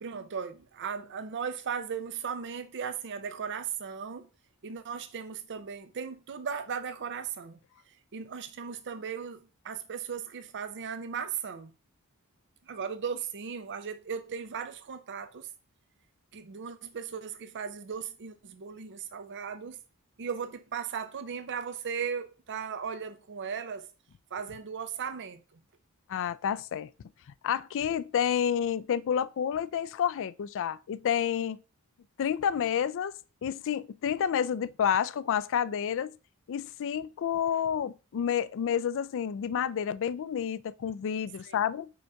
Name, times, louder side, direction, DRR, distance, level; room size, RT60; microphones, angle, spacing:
voice 1, 0.0-4.3 4.6-7.6 7.9-11.7 12.7-15.5 16.3-19.8 20.2-23.9 24.3-25.6 41.4-41.6, right 6 dB, 55° right, 0.5 m, -37 dB
voice 2, 26.1-26.9 27.4-31.6 32.2-33.1 33.4-36.2 36.5-41.9, left 8 dB, 60° left, 0.4 m, -29 dB
5.1 x 4.8 x 4.5 m
head